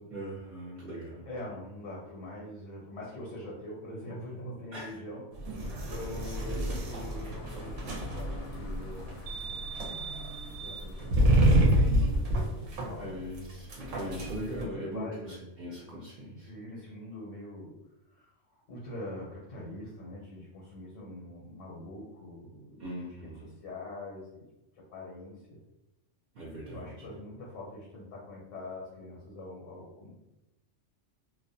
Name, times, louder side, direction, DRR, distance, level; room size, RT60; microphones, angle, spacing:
voice 1, 0.1-1.3 4.7-5.0 5.6-6.0 6.5-6.8 13.0-16.5 22.8-23.5 26.3-27.1, equal, 55° right, -6 dB, 0.8 m, -40 dB
voice 2, 1.3-5.2 5.8-9.3 10.0-10.4 10.6-13.3 14.6-15.5 16.3-17.7 18.1-18.3 18.7-22.9 23.6-24.4 24.7-25.6 26.7-30.2, left 1 dB, 85° left, -4 dB, 1.1 m, -44 dB
sound 1, 5.3-14.6, right 1 dB, 80° right, 0.9 m, -28 dB
sound 2, 5.6-12.0, left 1 dB, 65° left, 0.7 m, -43 dB
2.4 x 2.1 x 2.6 m, 0.95 s
omnidirectional pair, 1.3 m